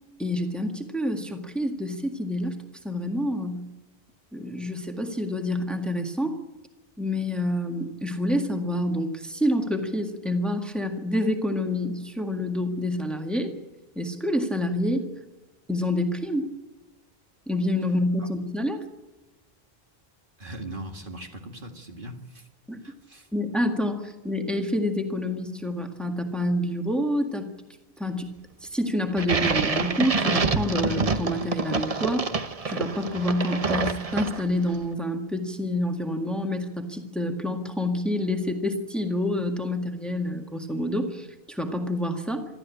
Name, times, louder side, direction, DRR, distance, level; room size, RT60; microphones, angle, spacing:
voice 1, 0.2-2.6 2.8-3.6 4.3-6.4 7.0-13.5 14.0-15.1 15.7-16.5 17.5-18.9 22.7-22.8 23.3-27.5 28.0-28.3 28.6-32.3 32.7-42.5, left 1 dB, ahead, 3 dB, 1.8 m, -27 dB
voice 2, 20.4-22.5 22.8-23.3, right 1 dB, 55° right, 3 dB, 2.2 m, -40 dB
sound 1, 29.2-34.7, right 4 dB, 35° right, 1.0 m, -27 dB
26.5 x 12.5 x 8.5 m, 1.1 s
omnidirectional pair, 1.0 m